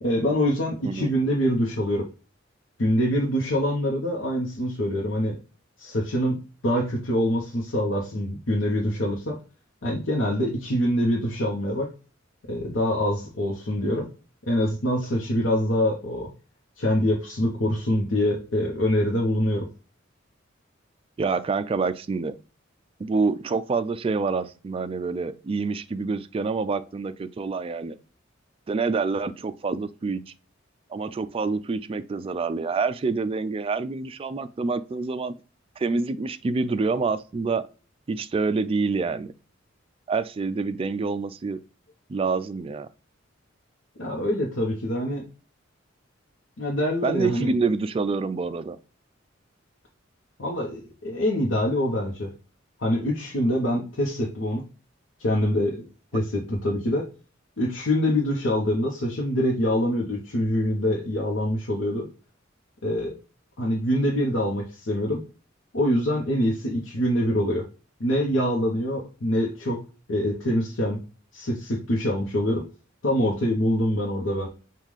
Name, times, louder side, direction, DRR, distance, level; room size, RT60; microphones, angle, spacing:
voice 1, 0.0-2.1 2.8-5.4 5.8-9.4 9.8-11.9 12.5-14.1 14.5-16.3 16.8-19.7 44.0-45.2 46.6-47.5 50.4-52.3 52.8-54.6 55.2-55.9 56.1-57.0 57.6-62.1 62.8-63.1 63.6-65.2 65.7-67.6 68.0-69.8 70.1-71.0 71.3-72.6 73.0-74.5, left 1 dB, 80° left, 0.9 m, -25 dB
voice 2, 21.2-22.3 23.0-28.0 28.7-30.2 30.9-35.3 35.8-37.7 38.1-39.3 40.1-41.6 42.1-42.9 47.0-48.8, right 4 dB, 30° right, 0.3 m, -27 dB
5.4 x 2.4 x 3.1 m
head